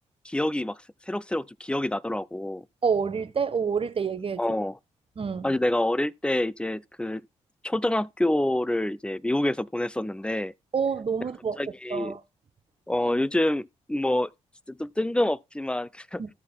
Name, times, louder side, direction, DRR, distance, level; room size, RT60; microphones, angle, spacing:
voice 1, 0.2-0.8 1.1-2.6 4.4-4.8 5.4-7.2 7.6-10.5 11.6-12.2 12.9-14.3 14.7-16.2, left 1 dB, 5° left, 0.5 m, -27 dB
voice 2, 2.8-4.4 5.2-5.5 10.7-11.6 11.9-12.2 16.2-16.3, right 6 dB, 40° right, 1.1 m, -27 dB
14.5 x 6.5 x 2.3 m
hypercardioid pair, 40°, 15 cm